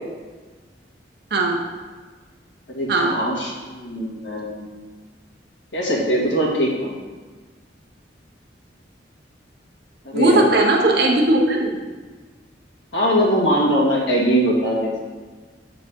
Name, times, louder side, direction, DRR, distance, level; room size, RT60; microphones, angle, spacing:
voice 1, 2.7-4.6 5.7-6.9 10.0-10.5 12.9-14.9, equal, 75° left, -4 dB, 1.7 m, -21 dB
voice 2, 10.1-11.7, right 2 dB, 60° right, 0 dB, 0.8 m, -17 dB
7.1 x 3.9 x 5.1 m, 1.4 s
head